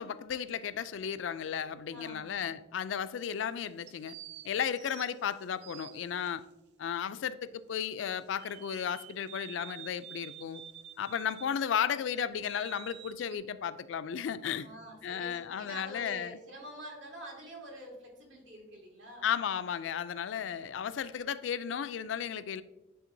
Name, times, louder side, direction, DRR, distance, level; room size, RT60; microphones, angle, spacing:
voice 1, 0.0-4.2 4.4-6.4 6.8-10.6 11.0-14.7 15.0-16.4 19.2-22.6, left 8 dB, 85° left, 0.3 m, -34 dB
sound 1, 1.4-2.4 3.9-6.3 8.4-11.6 12.0-13.4, right 12 dB, 60° right, 0.3 m, -50 dB
voice 2, 1.9-2.5 14.6-19.3, equal, 80° right, 2.0 m, -47 dB
10.5 x 3.6 x 2.6 m
head